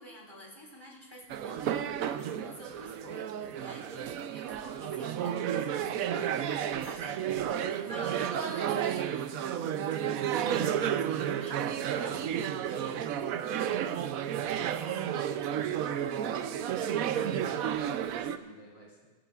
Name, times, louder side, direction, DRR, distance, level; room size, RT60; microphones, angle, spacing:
voice 1, 0.0-6.3 6.8-7.4 7.7-13.3, equal, 15° left, -3 dB, 3.3 m, -48 dB
sound 1, 1.3-18.4, right 9 dB, 70° right, 1.0 m, -32 dB
voice 2, 7.1-7.9 14.5-19.1, right 1 dB, 40° right, -4 dB, 1.8 m, -51 dB
21.0 x 14.5 x 2.4 m, 1.4 s
omnidirectional pair, 1.6 m